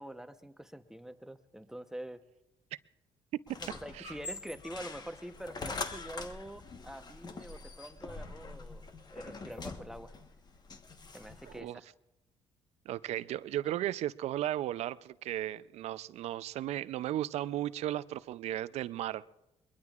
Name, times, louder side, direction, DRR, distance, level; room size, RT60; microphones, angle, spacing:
voice 1, 0.0-2.2 3.6-8.8 9.1-10.1 11.1-11.9, right 1 dB, 5° right, 9 dB, 0.9 m, -45 dB
sound 1, 3.5-11.6, left 3 dB, 35° left, 1.2 m, -44 dB
voice 2, 11.5-11.8 12.9-19.2, right 13 dB, 70° right, 17 dB, 0.5 m, -35 dB
21.5 x 21.5 x 2.4 m, 0.93 s
supercardioid pair, 80°, 12 cm